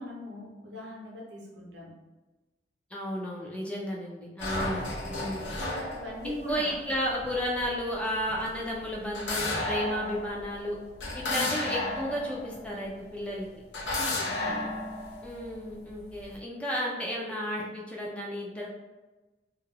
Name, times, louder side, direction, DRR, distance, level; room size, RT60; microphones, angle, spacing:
voice 1, 0.0-1.9 4.5-5.2 5.9-6.8 11.2-11.5 13.9-14.8, left 1 dB, 80° right, -2 dB, 0.7 m, -41 dB
voice 2, 2.9-5.5 6.5-10.8 11.1-13.5 15.2-18.7, equal, 5° left, -3 dB, 0.3 m, -33 dB
sound 1, 4.4-13.2 13.7-16.4, left 2 dB, 85° left, 0.6 m, -34 dB
2.3 x 2.1 x 3.2 m, 1.1 s
head